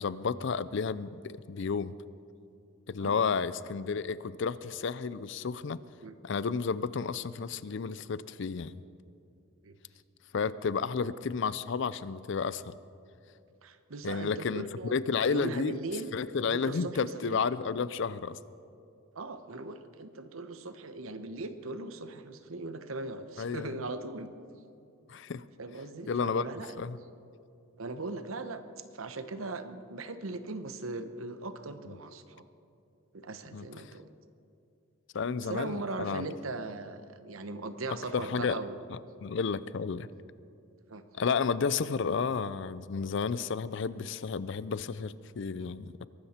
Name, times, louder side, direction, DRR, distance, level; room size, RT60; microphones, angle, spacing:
voice 1, 0.0-1.9 2.9-5.8 6.2-8.8 10.3-12.8 14.0-15.7 16.1-18.4 23.4-23.8 25.1-25.4 26.1-26.5 26.8-27.0 31.9-32.0 33.5-33.7 35.1-36.3 38.1-38.6 38.9-40.1 41.1-46.1, left 5 dB, 60° left, 17 dB, 0.5 m, -32 dB
voice 2, 13.6-15.0 15.3-16.1 16.4-17.4 19.1-24.3 25.6-26.8 27.8-28.6 28.9-32.5 33.1-34.1 35.4-38.8 40.9-41.0, right 2 dB, 85° right, 10 dB, 0.9 m, -39 dB
22.5 x 12.5 x 4.3 m, 2.6 s
head